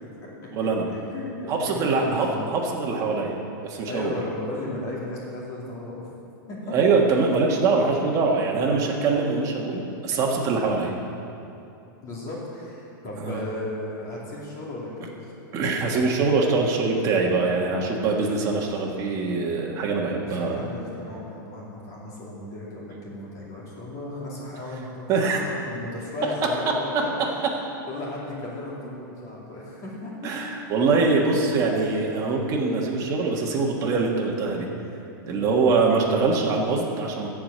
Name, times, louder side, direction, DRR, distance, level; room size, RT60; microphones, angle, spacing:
voice 1, 0.0-2.5 3.8-6.1 6.5-6.8 7.5-7.6 8.0-8.9 12.0-15.3 20.2-30.9 35.2-35.6, left 2 dB, 30° left, -5 dB, 2.6 m, -36 dB
voice 2, 0.5-0.8 1.5-3.4 3.6-4.1 6.7-10.9 13.2-13.4 15.5-20.6 25.1-25.4 30.2-34.7 35.3-37.3, right 4 dB, 30° right, -1 dB, 1.5 m, -23 dB
14.0 x 5.0 x 7.8 m, 2.7 s
supercardioid pair, 155°, 11 cm